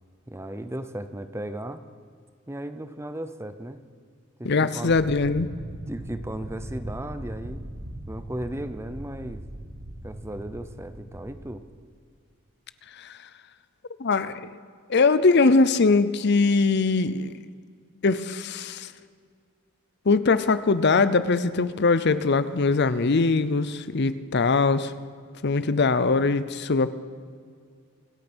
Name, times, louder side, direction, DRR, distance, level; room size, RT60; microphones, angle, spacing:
voice 1, 0.3-1.8 2.5-3.8 4.4-4.9 5.9-7.7 8.1-9.4 10.0-11.6, right 1 dB, 10° right, 11 dB, 0.7 m, -35 dB
voice 2, 4.4-5.5 13.0-13.1 14.0-14.5 14.9-17.3 18.0-18.9 20.1-24.9 25.4-26.9, left 3 dB, 50° left, 14 dB, 0.6 m, -21 dB
sound 1, 4.9-11.3, right 1 dB, 55° right, 2.0 m, -39 dB
25.5 x 8.9 x 6.1 m, 2.1 s
head